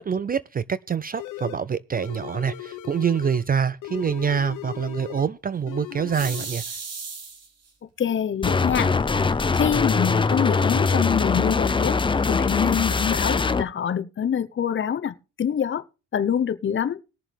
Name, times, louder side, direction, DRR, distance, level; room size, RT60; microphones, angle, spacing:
voice 1, 0.0-6.6, right 7 dB, 30° right, 0.4 m, -26 dB
sound 1, 1.2-1.6 2.0-3.5 3.8-5.3 5.7-6.5, left 13 dB, 85° left, 1.1 m, -37 dB
sound 2, 6.1-7.7 8.5-8.6 9.0-9.1 9.3-9.9, right 5 dB, 55° right, 3.0 m, -35 dB
voice 2, 8.0-8.9 9.5-12.0 12.3-15.8 16.1-17.0, left 8 dB, 40° left, 0.8 m, -25 dB
sound 3, 8.4-13.6, left 4 dB, 15° left, 0.6 m, -22 dB
20.0 x 7.1 x 3.4 m
cardioid pair, 90°, 30 cm